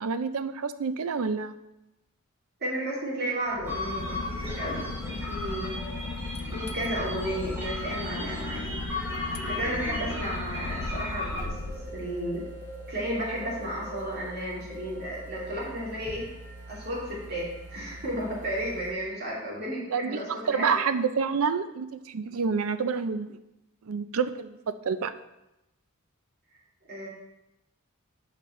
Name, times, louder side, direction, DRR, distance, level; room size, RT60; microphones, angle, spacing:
voice 1, 0.0-1.6 19.9-20.2 20.5-23.4 23.8-25.1, right 5 dB, 75° right, 11 dB, 0.5 m, -28 dB
voice 2, 2.6-5.7 6.5-8.7 9.5-12.4 12.9-16.3 16.7-20.9 26.9-27.1, right 1 dB, 45° right, -5 dB, 2.7 m, -33 dB
Boat Water vehicle / Engine, 3.5-12.4, left 4 dB, 85° left, 0.5 m, -37 dB
sound 1, 3.6-18.9, left 1 dB, 10° right, 3.1 m, -37 dB
11.0 x 5.2 x 3.2 m, 0.92 s
head